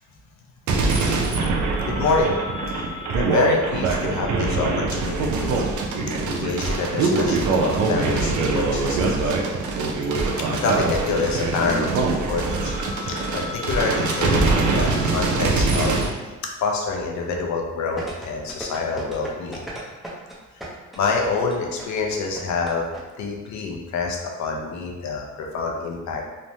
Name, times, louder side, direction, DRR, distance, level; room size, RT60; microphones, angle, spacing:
sound 1, 0.7-16.1, right 3 dB, 70° right, 0.5 m, -23 dB
voice 1, 0.9-1.6 1.9-2.3 2.7-2.9 3.1-5.6 6.2-9.3 10.5-16.0 16.6-19.7 21.0-22.9 23.2-26.2, left 4 dB, 70° left, 0 dB, 0.6 m, -27 dB
sound 2, 18.0-23.0 23.3-23.4, right 1 dB, ahead, 0.6 m, -35 dB
3.1 x 2.0 x 2.7 m, 1.2 s
cardioid pair, 90°, 30 cm